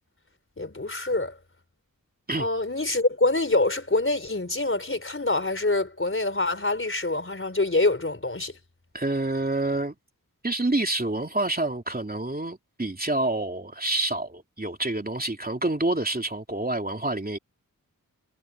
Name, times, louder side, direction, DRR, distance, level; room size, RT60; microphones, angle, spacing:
voice 1, 0.6-1.4 2.3-8.5, left 2 dB, 35° left, 4.1 m, -25 dB
voice 2, 8.9-9.9 10.4-17.4, right 2 dB, 25° right, 3.1 m, -27 dB
cardioid pair, 45°, 35 cm